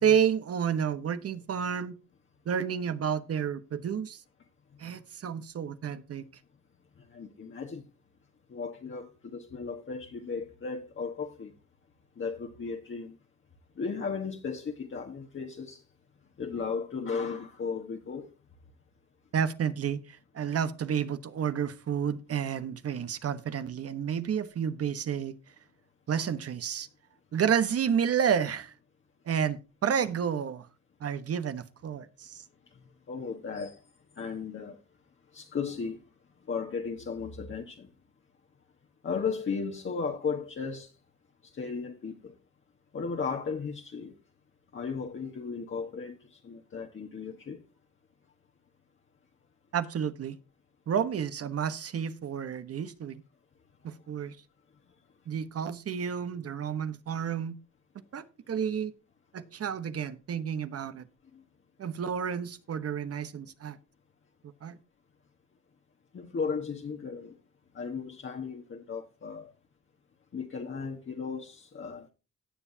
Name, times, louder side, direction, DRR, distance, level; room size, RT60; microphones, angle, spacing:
voice 1, 0.0-2.0 2.4-4.2 4.8-6.2 19.3-25.3 26.1-26.9 27.3-28.7 29.3-30.7 31.0-32.4 49.7-50.4 50.9-53.2 53.8-54.4 55.3-57.6 58.1-58.9 59.3-61.0 61.8-63.8 64.6-64.8, right 8 dB, 50° right, 1.2 m, -30 dB
voice 2, 7.1-7.8 8.5-11.5 12.2-13.2 13.8-15.8 16.4-18.3 33.1-33.8 34.2-34.8 35.3-36.0 36.5-37.9 39.0-40.9 41.5-42.3 42.9-44.1 44.7-47.6 61.3-61.4 66.1-67.3 67.7-69.5 70.3-72.1, left 5 dB, 40° left, 1.5 m, -35 dB
17.5 x 7.1 x 2.8 m
cardioid pair, 90°, 30 cm